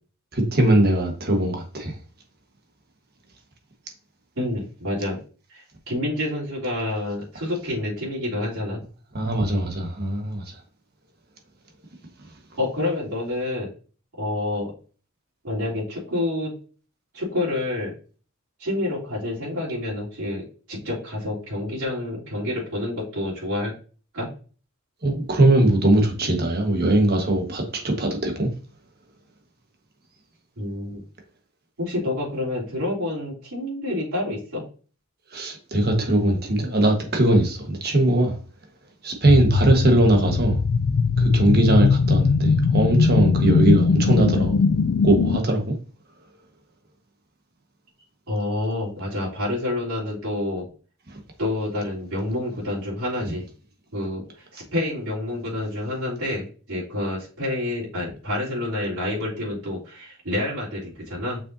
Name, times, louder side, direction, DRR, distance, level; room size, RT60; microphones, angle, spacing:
voice 1, 0.3-1.9 9.1-10.4 25.0-28.5 35.3-38.4 39.0-40.6 41.2-44.6 45.0-45.8 53.2-53.3, right 1 dB, 45° right, 1.5 m, -20 dB
voice 2, 4.4-5.2 5.5-8.8 12.6-13.7 14.2-14.7 15.4-16.5 17.1-17.9 18.6-23.7 24.1-24.3 30.6-31.0 31.8-34.6 48.3-50.7 51.4-53.5 53.9-61.4, left 1 dB, 85° right, 3.5 m, -28 dB
sound 1, 39.2-45.4, left 4 dB, 70° left, 0.4 m, -20 dB
6.7 x 5.7 x 2.8 m
head